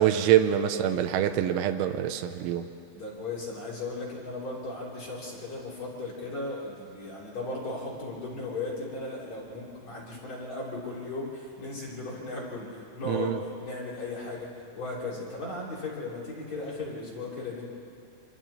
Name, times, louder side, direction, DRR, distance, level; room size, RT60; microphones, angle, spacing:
voice 1, 0.0-2.7 13.1-13.4, right 11 dB, 85° right, 7 dB, 3.3 m, -25 dB
voice 2, 2.9-17.6, left 2 dB, 40° left, -6 dB, 4.5 m, -36 dB
28.0 x 27.0 x 4.4 m, 2.7 s
omnidirectional pair, 5.4 m